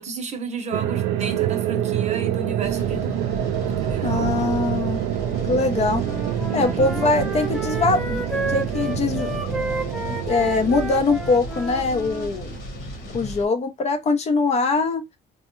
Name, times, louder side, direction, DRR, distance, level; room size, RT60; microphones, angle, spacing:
voice 1, 0.0-3.3 3.6-4.4 6.5-6.9, right 3 dB, 40° right, 0.8 m, -33 dB
sound 1, 0.7-12.8, right 12 dB, 90° right, 0.4 m, -27 dB
sound 2, 2.6-13.4, left 1 dB, 85° left, 1.3 m, -34 dB
voice 2, 4.0-5.0 5.5-6.0 6.5-9.3 10.2-12.5 13.1-15.0, left 3 dB, 40° left, 0.6 m, -22 dB
Wind instrument woodwind instrument, 6.0-12.3, right 1 dB, ahead, 0.5 m, -31 dB
3.3 x 2.2 x 3.0 m
cardioid pair, 110°, 17 cm